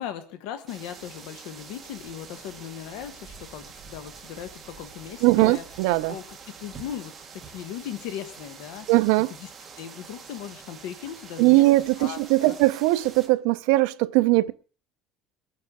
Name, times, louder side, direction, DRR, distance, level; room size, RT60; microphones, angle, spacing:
voice 1, 0.0-5.7 6.1-8.9 9.4-9.5 9.8-11.7 12.0-12.6, left 10 dB, 75° left, 1.2 m, -38 dB
sound 1, 0.7-13.3, right 5 dB, 20° right, 1.8 m, -45 dB
voice 2, 5.2-6.1 8.9-9.3 11.4-14.5, right 20 dB, 75° right, 0.6 m, -20 dB
23.0 x 9.5 x 3.7 m
cardioid pair, 175°, 0 cm